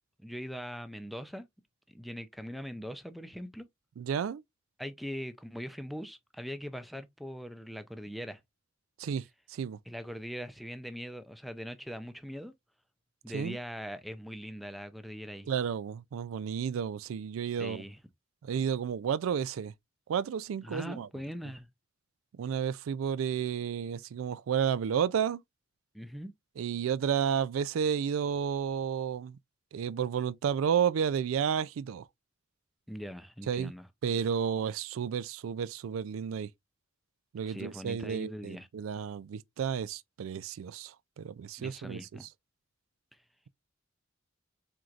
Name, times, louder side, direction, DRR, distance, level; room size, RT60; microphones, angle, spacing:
voice 1, 0.2-1.5 1.9-3.7 4.8-8.4 9.9-12.5 13.2-15.5 17.6-18.0 20.6-21.7 25.9-26.3 32.9-33.9 37.5-38.7 41.6-42.3, equal, ahead, 0.5 m, -41 dB
voice 2, 4.0-4.4 9.0-9.2 9.5-9.8 13.3-13.6 15.5-17.8 18.4-19.7 20.1-21.1 22.4-25.4 26.6-29.4 29.7-32.0 33.5-33.7 34.0-36.5 37.3-42.3, right 7 dB, 90° right, 0.3 m, -31 dB
4.5 x 3.8 x 2.4 m
head